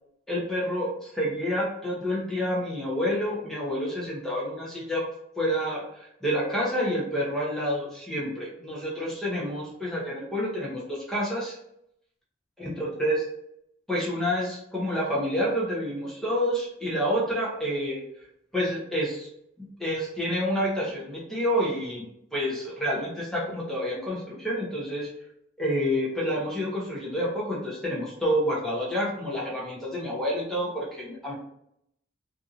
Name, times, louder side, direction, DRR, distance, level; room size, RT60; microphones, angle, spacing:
voice 1, 0.3-5.1 5.4-11.6 12.6-13.2 13.9-18.0 18.5-19.3 19.6-22.1 22.3-25.1 25.6-31.3, equal, ahead, -6 dB, 0.8 m, -28 dB
2.7 x 2.6 x 2.4 m, 0.76 s
head